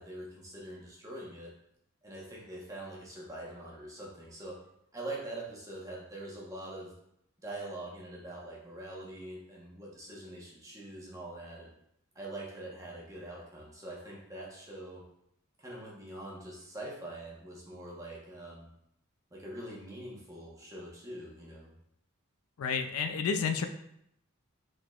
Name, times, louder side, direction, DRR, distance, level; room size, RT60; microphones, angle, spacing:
voice 1, 0.0-1.5 2.0-4.6 4.9-6.9 7.4-11.7 12.1-15.0 15.6-18.7 19.3-21.7, right 1 dB, 15° right, -4 dB, 1.0 m, -44 dB
voice 2, 22.6-23.7, left 6 dB, 80° left, 8 dB, 0.4 m, -30 dB
4.7 x 3.7 x 2.4 m, 0.75 s
head